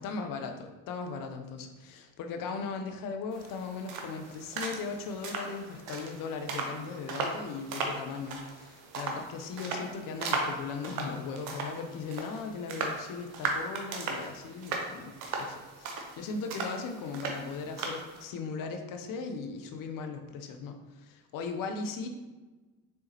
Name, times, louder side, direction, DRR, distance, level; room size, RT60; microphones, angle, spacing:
voice 1, 0.0-22.1, left 4 dB, 50° left, 6 dB, 0.6 m, -38 dB
sound 1, 3.3-18.2, right 3 dB, 70° right, 0.8 m, -37 dB
4.2 x 3.5 x 2.8 m, 1.2 s
hypercardioid pair, 50°, 43 cm